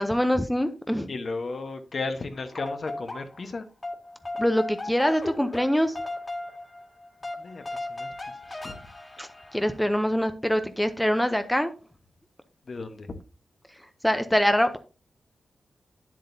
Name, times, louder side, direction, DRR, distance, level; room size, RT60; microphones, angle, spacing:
voice 1, 0.0-1.1 4.4-6.0 9.2-11.7 14.0-14.8, equal, 5° left, 0.6 m, -24 dB
voice 2, 1.1-3.7 7.4-8.8 12.7-13.1, left 3 dB, 50° left, 1.1 m, -35 dB
sound 1, 2.3-3.5 3.8-10.0, left 2 dB, 25° left, 2.1 m, -37 dB
10.0 x 7.5 x 2.7 m
wide cardioid pair, 130°, 0 cm